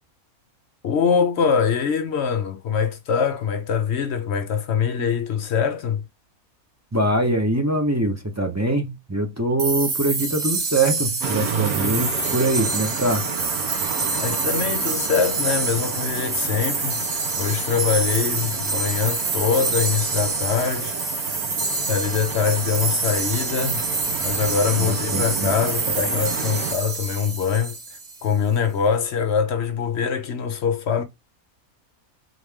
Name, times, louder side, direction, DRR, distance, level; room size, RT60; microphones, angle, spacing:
voice 1, 0.8-6.0 14.2-17.0 17.4-21.0 21.9-23.8 24.2-31.0, left 6 dB, 60° left, 0.8 m, -23 dB
voice 2, 6.9-13.2 24.8-25.5, right 1 dB, 15° right, 0.6 m, -23 dB
sound 1, 9.6-28.3, right 3 dB, 60° right, 1.5 m, -27 dB
sound 2, 11.2-26.7, right 6 dB, 80° right, 1.4 m, -32 dB
3.8 x 3.3 x 3.5 m
omnidirectional pair, 1.5 m